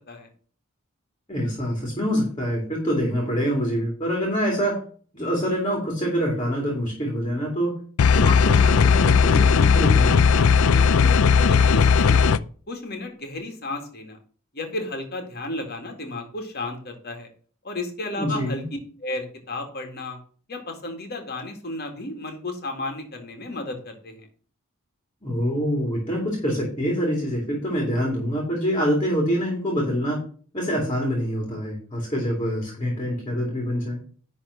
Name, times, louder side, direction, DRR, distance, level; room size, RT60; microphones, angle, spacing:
voice 1, 1.3-4.8 5.1-7.8 8.1-10.2 18.1-18.6 25.2-30.2 30.5-34.0, equal, 25° left, 0 dB, 2.5 m, -25 dB
sound 1, 8.0-12.4, left 5 dB, 75° left, 0.5 m, -17 dB
voice 2, 10.7-12.3 12.7-14.2 14.5-17.3 17.6-18.6 19.0-20.2 20.5-24.3, left 2 dB, 50° left, 4 dB, 2.0 m, -33 dB
10.5 x 3.7 x 6.3 m, 0.43 s
head